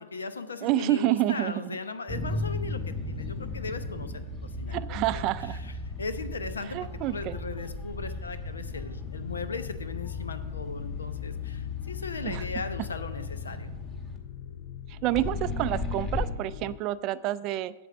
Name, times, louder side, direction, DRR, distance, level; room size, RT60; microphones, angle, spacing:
voice 1, 0.0-13.7, left 4 dB, 85° left, 10 dB, 0.8 m, -38 dB
voice 2, 0.6-1.8 4.7-5.6 6.7-7.4 12.2-12.4 14.9-17.7, right 14 dB, 40° right, 13 dB, 0.3 m, -28 dB
sound 1, 2.1-14.2 15.2-16.3, left 1 dB, 20° left, 1.7 m, -36 dB
sound 2, 3.2-16.8, left 11 dB, 55° left, 0.4 m, -41 dB
8.0 x 7.8 x 5.8 m, 1.1 s
hypercardioid pair, 110°, 0 cm